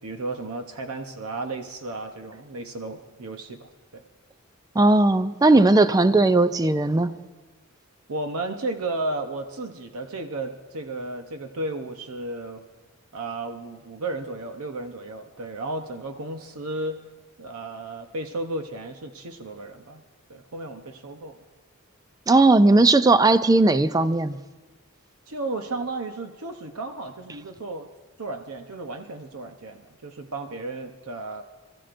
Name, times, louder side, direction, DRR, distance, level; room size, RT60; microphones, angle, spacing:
voice 1, 0.0-4.0 8.1-12.6 13.1-17.0 17.4-20.0 20.3-21.4 25.3-27.9 28.2-31.4, right 2 dB, 85° right, 0.9 m, -33 dB
voice 2, 4.8-7.2 22.3-24.4, right 2 dB, 15° right, 0.4 m, -17 dB
27.5 x 14.5 x 2.6 m
head